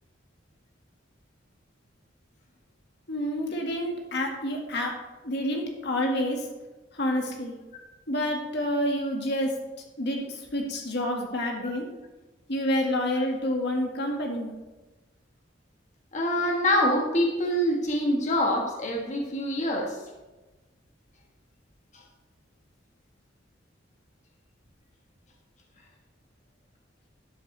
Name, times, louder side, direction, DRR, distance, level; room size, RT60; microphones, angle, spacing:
voice 1, 3.1-4.9 5.2-6.5 6.9-7.5 8.1-9.5 10.0-11.9 12.5-14.5, left 1 dB, 60° left, 1 dB, 1.7 m, -28 dB
voice 2, 16.1-20.0 21.9-22.0, equal, 40° left, 1 dB, 1.4 m, -25 dB
12.5 x 7.7 x 3.3 m, 1.2 s
head